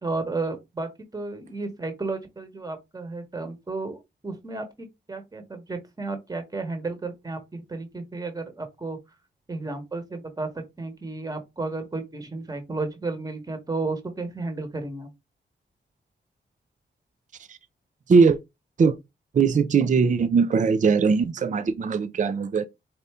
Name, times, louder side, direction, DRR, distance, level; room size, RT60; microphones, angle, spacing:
voice 1, 0.0-4.0 4.2-9.0 9.5-10.5 10.8-15.1, right 3 dB, 20° right, 1.1 m, -33 dB
voice 2, 19.3-22.7, right 5 dB, 40° right, 0.4 m, -20 dB
4.2 x 2.6 x 3.4 m
cardioid pair, 85°, 19 cm